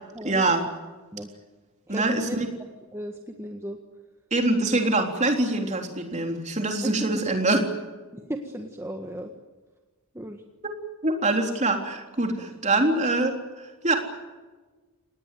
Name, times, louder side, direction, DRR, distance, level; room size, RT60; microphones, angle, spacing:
voice 1, 0.2-0.6 1.9-2.3 4.3-7.6 11.0-13.9, right 2 dB, 30° right, 3 dB, 3.7 m, -24 dB
voice 2, 1.9-2.4 2.9-3.8 4.7-4.8 6.8-7.2 8.1-9.3 10.1-10.4, right 1 dB, 10° right, 3 dB, 1.6 m, -35 dB
27.5 x 19.5 x 9.3 m, 1.3 s
head